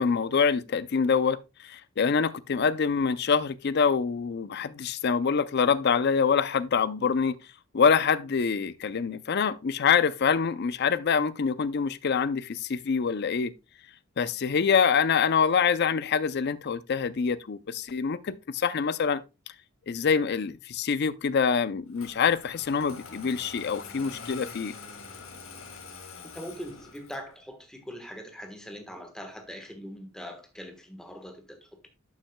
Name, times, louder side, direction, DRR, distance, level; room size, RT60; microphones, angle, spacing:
voice 1, 0.0-1.4 1.6-7.4 7.7-13.5 14.2-19.2 19.9-24.7, left 6 dB, 50° left, 0.4 m, -25 dB
Engine starting, 21.9-27.3, left 4 dB, 75° left, 1.7 m, -45 dB
voice 2, 26.2-31.9, equal, 5° left, 1.2 m, -42 dB
11.5 x 6.0 x 2.2 m
head